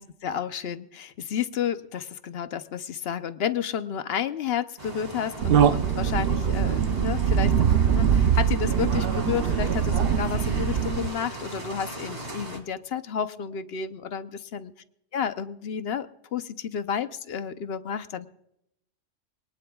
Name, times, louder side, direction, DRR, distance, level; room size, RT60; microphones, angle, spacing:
voice 1, 0.0-7.5 7.9-14.7 15.1-18.3, left 8 dB, 55° left, 11 dB, 0.9 m, -31 dB
sound 1, 4.8-12.6, right 2 dB, 35° right, 2.4 m, -38 dB
sound 2, 5.4-11.1, right 8 dB, 55° right, 0.8 m, -22 dB
23.5 x 19.0 x 2.3 m, 0.79 s
omnidirectional pair, 1.3 m